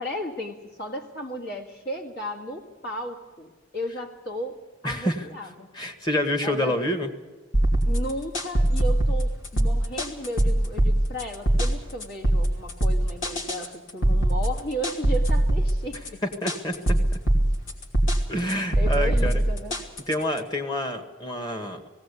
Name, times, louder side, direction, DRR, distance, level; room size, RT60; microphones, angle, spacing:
voice 1, 0.0-5.7 6.4-6.8 7.8-16.2 18.8-19.8, equal, 50° left, 0 dB, 2.1 m, -34 dB
voice 2, 4.8-5.3 5.7-7.1 16.2-16.8 18.3-19.4 20.1-21.9, left 1 dB, 20° left, 6 dB, 1.7 m, -27 dB
sound 1, 7.5-20.4, right 1 dB, 85° left, 3.0 m, -23 dB
18.5 x 17.0 x 8.4 m, 1.3 s
head